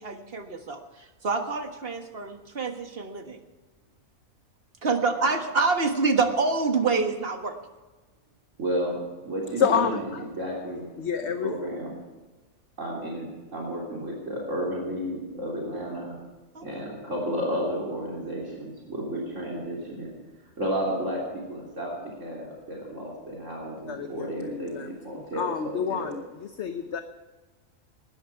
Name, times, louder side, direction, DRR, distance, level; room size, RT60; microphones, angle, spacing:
voice 1, 0.0-3.4 4.8-7.5 16.5-16.6, right 4 dB, 45° right, 6 dB, 1.7 m, -26 dB
voice 2, 8.6-10.9 11.2-11.9 12.8-16.2 16.6-20.1 20.6-26.1, equal, 60° right, -2 dB, 3.5 m, -32 dB
voice 3, 9.6-10.3 11.0-11.5 23.9-27.0, left 7 dB, 55° left, 8 dB, 1.1 m, -29 dB
19.0 x 13.5 x 4.6 m, 1.2 s
omnidirectional pair, 1.4 m